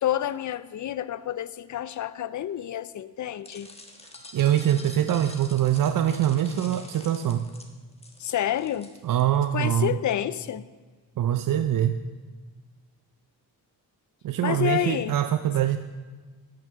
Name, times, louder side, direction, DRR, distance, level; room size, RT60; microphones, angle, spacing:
voice 1, 0.0-3.7 8.2-8.9 9.5-10.6 14.4-15.2, left 11 dB, 50° left, 16 dB, 0.5 m, -29 dB
sound 1, 3.4-9.5, left 2 dB, 15° left, 1.3 m, -46 dB
voice 2, 4.3-7.5 9.0-10.0 11.2-12.0 14.2-15.8, right 11 dB, 60° right, 9 dB, 0.5 m, -23 dB
9.0 x 5.4 x 6.6 m, 1.4 s
cardioid pair, 85°, 38 cm